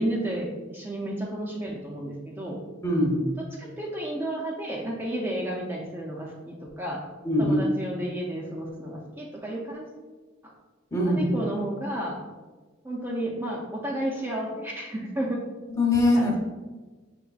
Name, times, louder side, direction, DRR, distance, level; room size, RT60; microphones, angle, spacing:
voice 1, 0.0-2.6 3.4-7.1 7.4-9.9 10.4-10.5 11.0-12.2 12.8-15.4 16.1-16.4, right 1 dB, 10° right, -3 dB, 0.4 m, -32 dB
voice 2, 2.8-3.2 7.2-7.6 10.9-11.2 15.7-16.3, left 1 dB, 15° left, -1 dB, 0.8 m, -22 dB
5.8 x 3.1 x 2.4 m, 1.3 s
head